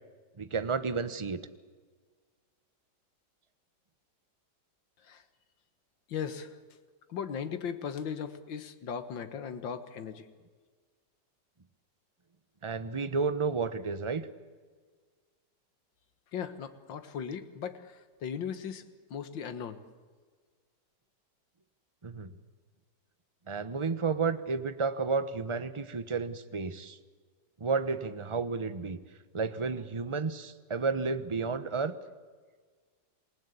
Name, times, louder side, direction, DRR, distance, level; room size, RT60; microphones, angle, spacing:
voice 1, 0.4-1.4 12.6-14.3 22.0-22.3 23.5-27.0 27.6-29.0 29.3-31.9, right 4 dB, 20° right, 12 dB, 0.9 m, -31 dB
voice 2, 6.1-6.5 7.1-10.2 16.3-18.8 19.1-19.8, left 7 dB, 90° left, 10 dB, 2.1 m, -37 dB
28.0 x 19.0 x 8.4 m, 1.5 s
omnidirectional pair, 2.0 m